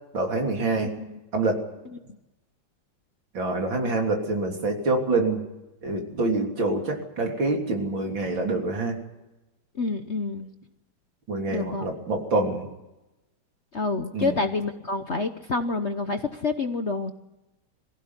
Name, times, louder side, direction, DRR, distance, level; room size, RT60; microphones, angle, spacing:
voice 1, 0.1-0.9 1.3-1.6 3.3-5.4 5.8-9.0 11.3-12.7 14.1-14.4, right 2 dB, 75° right, 2 dB, 4.0 m, -26 dB
voice 2, 9.7-10.5 11.5-11.9 13.7-17.1, left 3 dB, 45° left, 7 dB, 1.0 m, -28 dB
23.0 x 15.5 x 9.9 m, 0.99 s
omnidirectional pair, 2.1 m